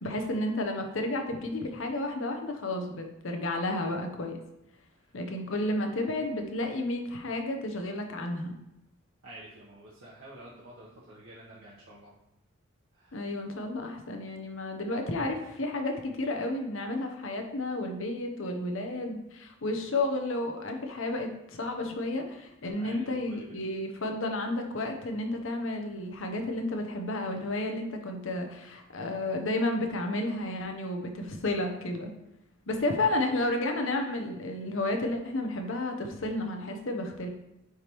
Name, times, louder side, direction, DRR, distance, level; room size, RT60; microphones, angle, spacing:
voice 1, 0.0-4.4 5.1-8.6 13.1-32.1 32.7-37.3, left 2 dB, 70° left, 4 dB, 0.8 m, -32 dB
voice 2, 9.2-12.1 12.9-13.3 22.8-23.6, right 1 dB, 65° right, -7 dB, 1.0 m, -50 dB
9.4 x 3.4 x 3.0 m, 0.88 s
head